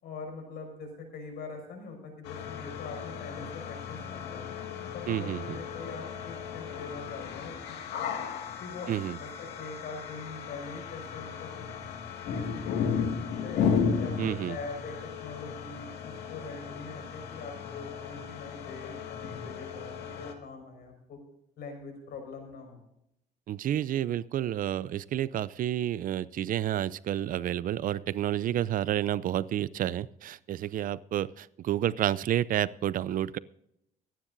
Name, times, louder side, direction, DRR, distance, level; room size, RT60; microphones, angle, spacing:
voice 1, 0.0-4.6 4.9-8.1 8.6-8.9 9.2-11.7 12.2-13.6 14.0-21.2 21.6-22.8, left 4 dB, 65° left, 4 dB, 5.4 m, -43 dB
sound 1, 2.2-20.3, left 6 dB, 85° left, 1.9 m, -35 dB
voice 2, 5.1-5.6 8.9-9.2 14.2-14.6 23.5-33.4, right 12 dB, 55° right, 19 dB, 0.5 m, -30 dB
24.5 x 10.0 x 2.6 m, 0.78 s
cardioid pair, 110°, 17 cm